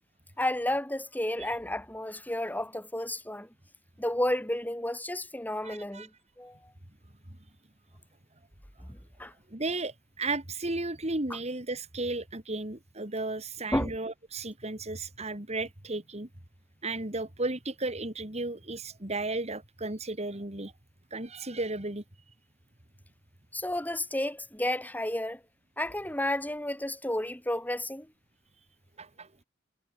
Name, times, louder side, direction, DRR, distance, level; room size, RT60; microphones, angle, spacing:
voice 1, 0.4-3.5 4.0-6.1 6.4-6.6 8.9-9.3 13.7-14.0 23.5-25.4 25.8-28.1, left 1 dB, 10° left, 7.0 m, -31 dB
voice 2, 5.6-6.1 9.5-16.3 16.8-20.7 21.1-22.0 29.0-29.3, right 2 dB, 35° right, 3.0 m, -34 dB
head